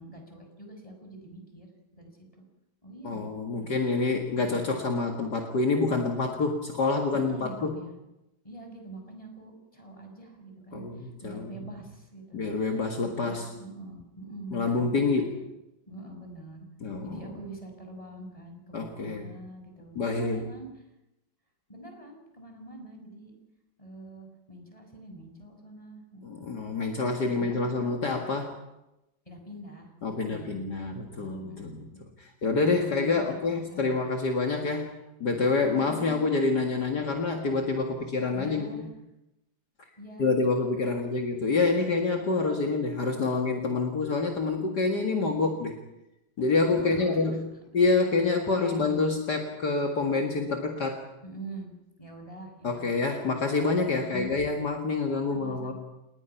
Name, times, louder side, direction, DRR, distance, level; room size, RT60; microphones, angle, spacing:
voice 1, 0.0-2.4 2.8-3.3 3.6-3.8 4.4-4.8 7.1-8.0 8.4-15.2 15.9-16.7 17.0-20.9 21.7-23.3 23.8-26.5 27.2-27.8 29.3-30.6 31.2-32.0 32.8-34.0 35.7-36.1 38.3-38.9 40.0-40.3 40.8-41.0 46.7-47.4 48.4-48.9 51.2-51.7 52.0-52.9 54.1-54.5 55.3-55.7, right 1 dB, 15° left, 3 dB, 5.9 m, -45 dB
voice 2, 3.0-7.7 10.7-11.6 12.3-13.5 14.5-15.4 16.8-17.1 18.7-19.3 20.0-20.4 26.2-28.5 30.0-31.8 32.2-34.9 35.2-38.9 40.2-45.8 46.4-47.4 47.7-51.0 52.6-55.7, left 3 dB, 60° left, 3 dB, 2.5 m, -27 dB
29.5 x 20.0 x 5.8 m, 0.91 s
omnidirectional pair, 2.1 m